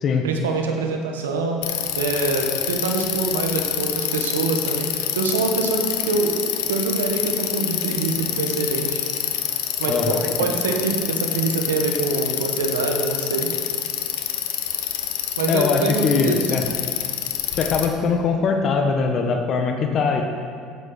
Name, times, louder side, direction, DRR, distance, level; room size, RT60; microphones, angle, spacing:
voice 1, 0.2-1.6 1.9-6.3 6.7-9.0 9.8-13.5 15.4-16.5, right 4 dB, 90° right, 3 dB, 1.3 m, -25 dB
Bicycle, 1.6-17.9, left 11 dB, 75° left, 0.9 m, -27 dB
voice 2, 9.9-10.3 15.5-16.7 17.6-20.3, left 5 dB, 50° left, 4 dB, 1.3 m, -21 dB
9.4 x 8.0 x 6.5 m, 2.1 s
hypercardioid pair, 75°, 0 cm